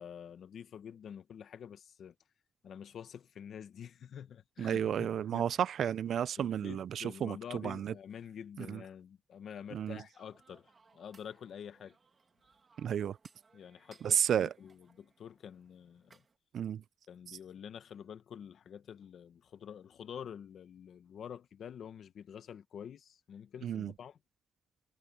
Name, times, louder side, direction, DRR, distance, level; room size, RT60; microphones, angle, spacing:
voice 1, 0.0-2.1 2.6-5.5 6.4-12.0 13.5-16.2 17.1-24.2, left 8 dB, 65° left, 1.2 m, -48 dB
voice 2, 4.6-7.9 8.6-8.8 9.7-10.0 12.8-13.2 14.0-14.5 16.5-16.8 23.6-23.9, right 9 dB, 70° right, 0.4 m, -32 dB
sound 1, 10.1-16.4, right 4 dB, 35° right, 2.3 m, -66 dB
wide cardioid pair, 140°, 0 cm